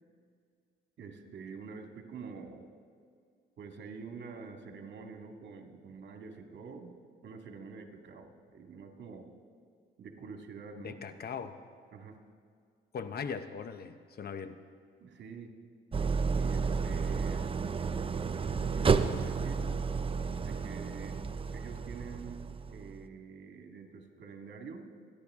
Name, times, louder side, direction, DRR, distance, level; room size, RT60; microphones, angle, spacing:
voice 1, 1.0-2.7 3.6-7.0 7.2-9.3 10.0-11.0 11.9-12.2 15.0-15.5 16.3-17.6 18.7-19.7 20.4-21.2 21.5-24.9, right 5 dB, 65° right, 3 dB, 2.0 m, -46 dB
voice 2, 10.8-11.6 12.9-14.6, left 6 dB, 50° left, 10 dB, 0.9 m, -39 dB
Idling, 15.9-23.0, right 5 dB, 30° right, 0.7 m, -31 dB
27.0 x 10.0 x 3.7 m, 2.2 s
cardioid pair, 90°, 20 cm